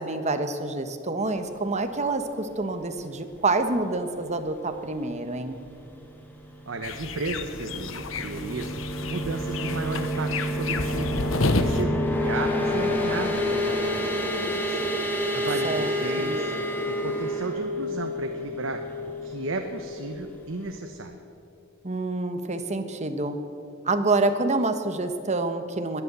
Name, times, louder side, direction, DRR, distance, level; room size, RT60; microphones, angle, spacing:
voice 1, 0.0-5.6 15.6-15.9 16.2-16.4 21.8-23.4 23.8-26.0, right 2 dB, 35° right, 8 dB, 1.2 m, -27 dB
voice 2, 6.7-10.3 10.5-16.8 17.0-18.8 19.2-21.2, right 3 dB, 75° right, 5 dB, 1.0 m, -34 dB
sound 1, 6.8-11.8, left 3 dB, 75° left, 1.0 m, -30 dB
sound 2, 7.8-20.3, left 1 dB, 10° left, 2.0 m, -29 dB
21.5 x 8.3 x 8.1 m, 2.6 s
head